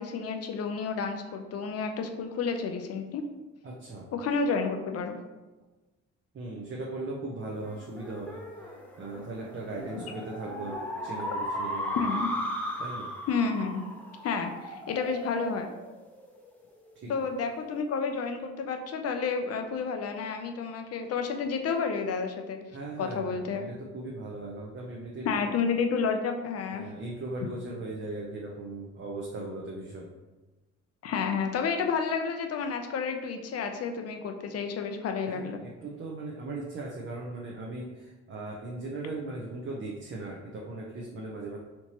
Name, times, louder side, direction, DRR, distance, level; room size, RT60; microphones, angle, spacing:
voice 1, 0.0-3.2 4.1-5.2 12.0-12.3 13.3-13.8 14.2-15.7 17.1-22.6 23.0-23.7 25.2-26.9 31.0-35.6, left 5 dB, 55° left, 6 dB, 0.6 m, -30 dB
voice 2, 3.6-4.1 6.3-8.7 9.0-12.0 12.8-13.1 16.9-17.1 22.7-25.5 26.7-30.1 35.3-41.6, right 2 dB, 40° right, -2 dB, 0.6 m, -38 dB
sound 1, 7.6-16.5, left 1 dB, 5° left, 0.7 m, -36 dB
4.4 x 2.8 x 2.9 m, 1.2 s
cardioid pair, 90°, 30 cm